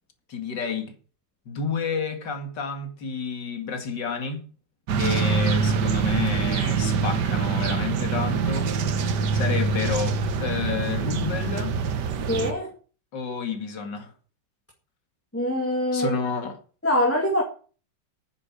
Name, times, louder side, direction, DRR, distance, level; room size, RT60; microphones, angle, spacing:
voice 1, 0.3-0.9 1.5-4.5 4.9-8.7 9.3-11.8 13.1-14.1 15.9-16.6, left 5 dB, 70° left, 2.7 m, -30 dB
sound 1, 4.9-12.5, right 5 dB, 70° right, 1.6 m, -24 dB
voice 2, 12.3-12.7 15.3-16.2 16.8-17.4, left 1 dB, 5° left, 2.1 m, -23 dB
9.7 x 8.0 x 8.5 m
omnidirectional pair, 2.0 m